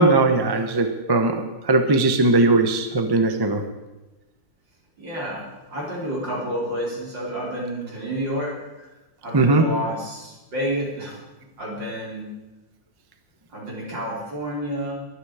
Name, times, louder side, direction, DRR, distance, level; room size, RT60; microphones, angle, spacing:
voice 1, 0.0-3.6 9.3-9.6, right 2 dB, 20° right, 6 dB, 0.6 m, -19 dB
voice 2, 5.0-8.9 9.2-11.2 11.6-12.3 13.5-14.9, equal, 60° right, -4 dB, 5.2 m, -30 dB
23.0 x 8.9 x 5.0 m, 1.1 s
omnidirectional pair, 2.3 m